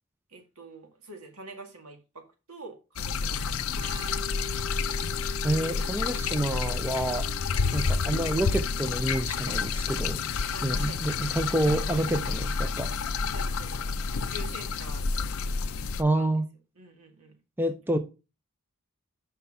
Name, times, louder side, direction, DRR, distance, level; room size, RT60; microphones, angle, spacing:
voice 1, 0.3-4.5 7.6-7.9 10.5-11.2 11.7-12.2 13.0-15.3 15.8-15.9 16.1-16.3 16.8-17.4, right 2 dB, 80° right, 1.9 m, -47 dB
sound 1, 3.0-16.0, left 5 dB, 70° left, 0.5 m, -29 dB
Organ, 3.7-11.2, left 2 dB, 55° right, 0.9 m, -45 dB
voice 2, 5.4-7.3 7.7-10.2 10.6-12.9 16.0-16.4 17.6-18.0, right 1 dB, 10° right, 0.4 m, -28 dB
5.8 x 5.6 x 5.5 m
head